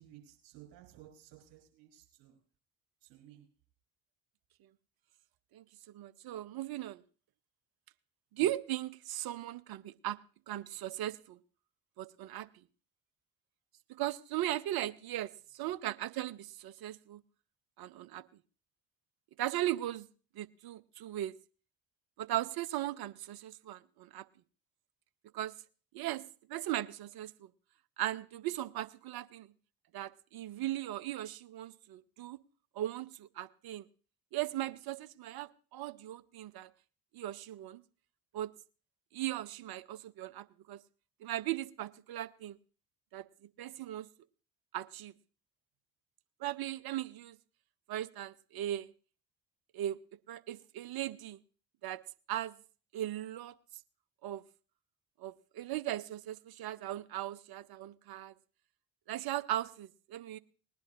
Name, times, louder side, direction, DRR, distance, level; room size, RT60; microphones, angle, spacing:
voice 1, 0.0-2.4 3.0-3.5, right 12 dB, 70° right, 1 dB, 4.4 m, -56 dB
voice 2, 5.9-7.0 8.3-10.2 10.5-11.4 12.0-12.5 13.9-17.2 17.8-18.2 19.4-20.1 20.3-21.3 22.2-24.2 25.3-25.5 25.9-27.5 28.0-29.5 29.9-32.4 32.8-33.9 34.3-36.7 37.1-37.8 38.3-38.5 39.1-40.8 41.2-42.6 43.1-43.3 43.6-44.1 44.7-45.1 46.4-47.4 47.9-48.9 49.7-50.0 50.3-51.4 51.8-52.0 52.3-52.5 52.9-53.5 54.2-54.4 55.2-58.3 59.1-60.4, right 13 dB, 50° right, 14 dB, 0.7 m, -38 dB
20.5 x 10.5 x 2.5 m, 0.37 s
figure-of-eight pair, 45°, 46 cm